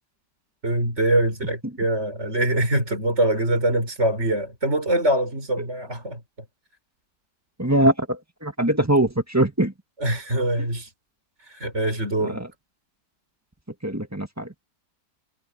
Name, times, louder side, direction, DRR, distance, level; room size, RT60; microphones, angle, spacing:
voice 1, 0.6-6.2 10.0-10.9 11.5-12.4, right 1 dB, 40° right, 6.6 m, -23 dB
voice 2, 7.6-9.7 12.2-12.5 13.8-14.5, right 1 dB, 10° right, 1.6 m, -22 dB
omnidirectional pair, 1.8 m